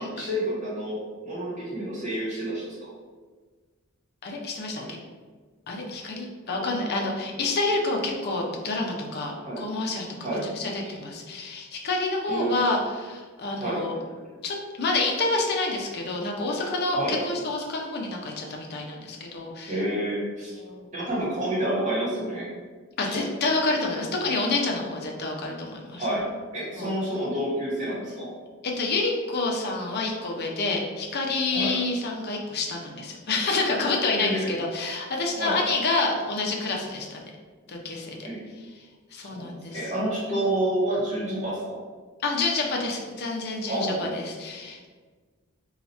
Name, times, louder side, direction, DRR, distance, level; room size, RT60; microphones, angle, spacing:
voice 1, 0.0-2.9 4.7-4.9 6.5-7.0 9.4-9.6 10.2-10.5 10.8-10.9 12.3-12.6 13.6-13.8 16.9-17.2 19.7-20.6 20.9-22.5 23.0-23.2 25.9-26.3 26.5-28.3 31.5-31.7 34.1-34.5 35.3-35.6 38.2-38.4 39.2-41.8 43.7-44.2, right 1 dB, 35° right, -7 dB, 1.2 m, -29 dB
voice 2, 4.2-4.8 5.7-14.0 14.4-19.8 20.5-20.9 23.0-26.0 26.7-27.0 28.6-37.2 37.7-38.2 39.1-39.9 42.2-44.9, left 3 dB, 50° left, 0 dB, 0.5 m, -28 dB
2.8 x 2.3 x 4.2 m, 1.5 s
head